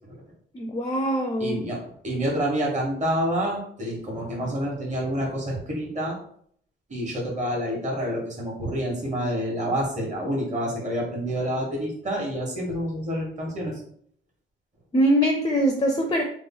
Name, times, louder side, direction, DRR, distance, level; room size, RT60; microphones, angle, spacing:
voice 1, 0.5-1.6 14.9-16.2, equal, 20° left, 3 dB, 0.5 m, -22 dB
voice 2, 1.4-6.2 6.9-13.8, equal, 35° right, -2 dB, 1.4 m, -28 dB
3.1 x 2.1 x 3.8 m, 0.63 s
cardioid pair, 90°, 20 cm